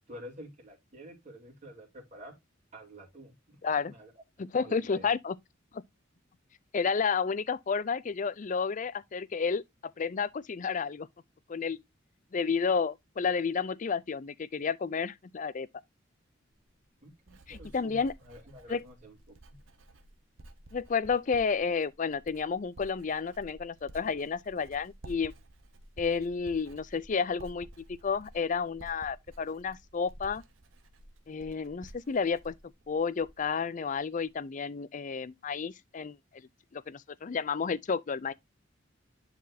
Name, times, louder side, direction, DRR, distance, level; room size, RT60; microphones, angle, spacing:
voice 1, 0.1-2.4 2.7-4.1 4.5-5.1 17.0-19.6, equal, 40° right, 2.5 m, -49 dB
voice 2, 3.6-3.9 4.4-5.4 5.7-5.8 6.7-11.1 11.5-11.8 12.3-15.7 17.5-18.1 18.7-18.8 20.7-25.3 26.0-30.4 31.3-32.5 32.9-36.2 36.7-38.3, left 5 dB, 40° left, 0.4 m, -31 dB
Writing, 16.5-33.6 33.9-34.3, right 1 dB, 80° right, 1.0 m, -53 dB
10.5 x 4.1 x 2.7 m
head